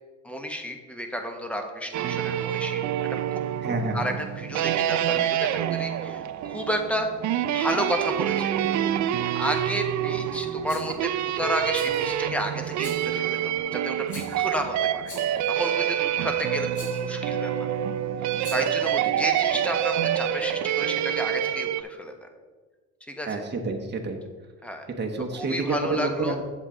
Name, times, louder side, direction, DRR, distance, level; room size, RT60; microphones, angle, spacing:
voice 1, 0.2-2.9 3.3-3.4 3.9-7.1 7.5-8.5 8.9-11.1 11.4-17.7 18.2-22.3 23.1-23.4 24.6-24.9 25.3-26.4, equal, 5° left, 4 dB, 1.2 m, -32 dB
sound 1, 1.9-21.8, right 10 dB, 70° right, 0.5 m, -27 dB
voice 2, 3.6-4.0 14.3-14.4 23.2-24.2 25.0-26.4, right 3 dB, 35° right, 2 dB, 1.1 m, -28 dB
Waves surf, 7.9-13.6, left 1 dB, 45° left, 1.8 m, -51 dB
Rattle, 10.7-11.0 11.7-12.2 12.8-13.2 14.1-14.5 15.0-15.5 16.7-17.1 18.3-18.8, left 2 dB, 70° left, 2.6 m, -43 dB
7.9 x 7.3 x 3.8 m, 1.4 s
cardioid pair, 90°, 30 cm